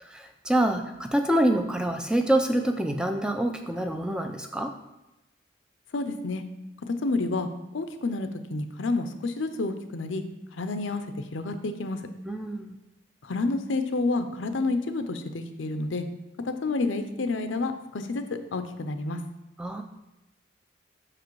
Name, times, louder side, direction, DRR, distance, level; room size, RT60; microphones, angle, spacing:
voice 1, 0.0-4.7 12.2-12.8 19.6-19.8, right 1 dB, 5° right, 5 dB, 0.4 m, -26 dB
voice 2, 5.9-6.4 6.9-7.5 7.7-10.2 10.6-11.0 11.3-12.0 13.2-16.0 16.4-18.2 18.5-19.2, left 3 dB, 85° left, 9 dB, 0.6 m, -29 dB
6.1 x 5.0 x 4.6 m, 0.95 s
head